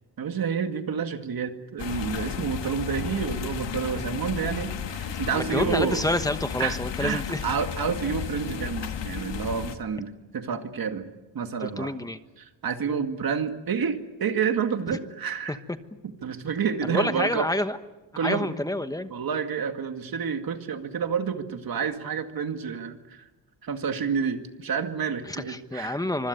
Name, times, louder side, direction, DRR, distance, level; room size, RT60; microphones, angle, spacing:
voice 1, 0.2-6.0 6.6-11.9 12.4-15.6 16.2-17.5 18.2-18.5 19.1-23.3 23.6-26.0, right 6 dB, 55° right, 6 dB, 2.2 m, -29 dB
sound 1, 1.8-9.8, left 8 dB, 75° left, 2.0 m, -33 dB
voice 2, 5.3-7.4 11.6-12.2 15.5-15.8 16.8-17.8 18.2-19.1 25.3-26.3, left 1 dB, 10° left, 9 dB, 1.2 m, -28 dB
25.5 x 24.5 x 8.2 m, 1.1 s
wide cardioid pair, 155°, 43 cm